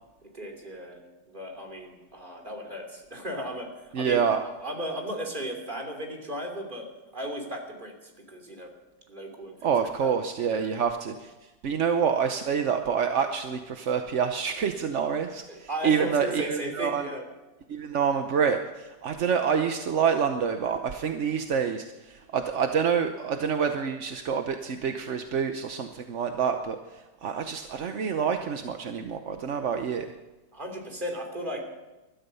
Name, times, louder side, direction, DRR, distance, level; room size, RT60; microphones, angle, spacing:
voice 1, 0.3-1.0 1.3-3.7 4.0-6.9 7.1-8.7 9.1-10.2 10.5-10.7 15.5-17.2 30.5-31.6, equal, 25° right, 1 dB, 3.1 m, -36 dB
voice 2, 3.9-4.4 9.6-11.3 11.6-17.1 17.7-26.8 27.2-30.1, right 7 dB, 50° right, 6 dB, 0.9 m, -27 dB
20.0 x 12.5 x 5.6 m, 1.1 s
omnidirectional pair, 2.1 m